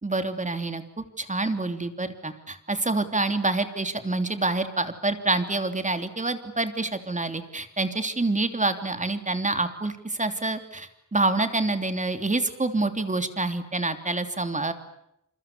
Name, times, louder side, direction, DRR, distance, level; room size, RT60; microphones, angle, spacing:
voice 1, 0.0-14.7, right 2 dB, 25° right, 9 dB, 3.1 m, -27 dB
29.5 x 27.5 x 6.9 m, 0.80 s
wide cardioid pair, 145°, 30 cm